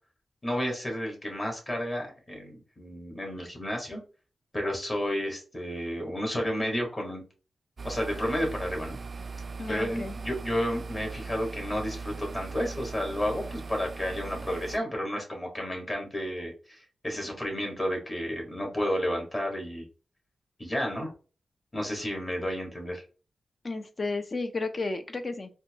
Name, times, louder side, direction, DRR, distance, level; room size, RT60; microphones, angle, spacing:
voice 1, 0.4-4.0 4.5-7.2 7.8-9.0 9.7-19.9 20.6-21.1 21.7-23.0, equal, 25° left, 0 dB, 1.7 m, -31 dB
sound 1, 7.8-14.8, right 4 dB, 45° right, 0.3 m, -39 dB
voice 2, 9.6-10.1 23.6-25.5, left 3 dB, 40° left, 8 dB, 0.6 m, -32 dB
4.2 x 2.3 x 2.9 m, 0.36 s
cardioid pair, 80°, 0 cm